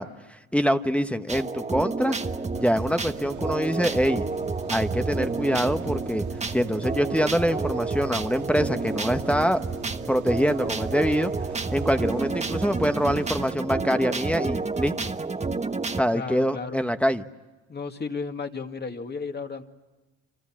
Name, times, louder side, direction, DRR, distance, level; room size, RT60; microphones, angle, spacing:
voice 1, 0.0-2.2 2.5-4.3 4.7-6.2 6.5-9.6 10.1-11.3 11.7-15.1 15.9-17.2, equal, 5° left, 7 dB, 1.1 m, -25 dB
sound 1, 1.3-16.0, right 3 dB, 20° right, 1.3 m, -30 dB
sound 2, 2.5-13.5, right 7 dB, 75° right, 2.1 m, -41 dB
voice 2, 16.1-16.9 17.7-19.6, left 4 dB, 35° left, 5 dB, 2.2 m, -33 dB
29.5 x 26.0 x 7.5 m, 1.1 s
cardioid pair, 90°, 30 cm